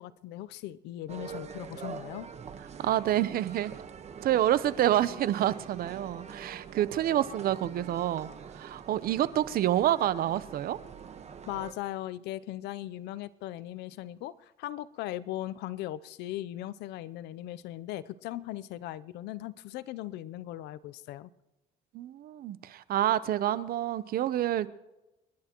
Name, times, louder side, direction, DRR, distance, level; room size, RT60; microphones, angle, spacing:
voice 1, 0.0-2.3 11.5-21.3, left 14 dB, 85° left, 16 dB, 0.6 m, -38 dB
sound 1, 1.1-11.7, right 6 dB, 40° right, 1.2 m, -44 dB
voice 2, 2.8-3.7 4.2-10.8 21.9-24.7, right 12 dB, 60° right, 16 dB, 0.7 m, -28 dB
28.5 x 11.5 x 3.0 m, 1.0 s
cardioid pair, 110°, 17 cm